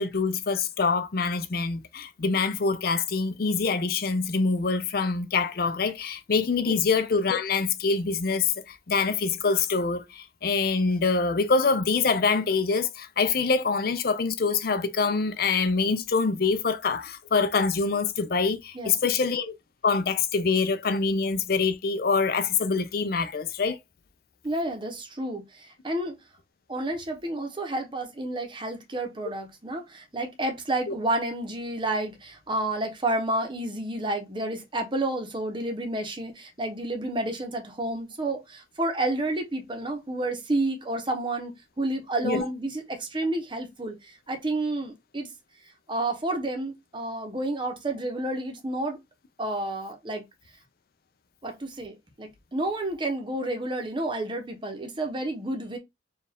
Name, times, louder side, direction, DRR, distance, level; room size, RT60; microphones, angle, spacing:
voice 1, 0.0-19.5 19.8-23.8 30.9-31.0 42.2-42.5, left 4 dB, 55° left, 0.5 m, -25 dB
voice 2, 18.7-19.2 24.4-26.2 26.7-45.3 45.9-49.0 49.4-50.2 51.4-55.8, right 2 dB, 25° right, 0.8 m, -30 dB
4.5 x 2.4 x 3.4 m
head